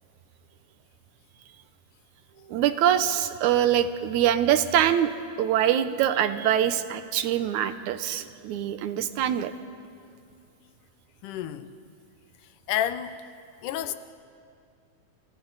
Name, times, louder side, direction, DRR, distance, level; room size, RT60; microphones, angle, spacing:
voice 1, 2.5-5.1 5.4-9.5, right 10 dB, 75° right, 2.2 m, -24 dB
voice 2, 11.2-11.7 12.7-13.2 13.6-13.9, left 11 dB, 90° left, 2.4 m, -29 dB
29.0 x 27.5 x 4.1 m
omnidirectional pair, 3.6 m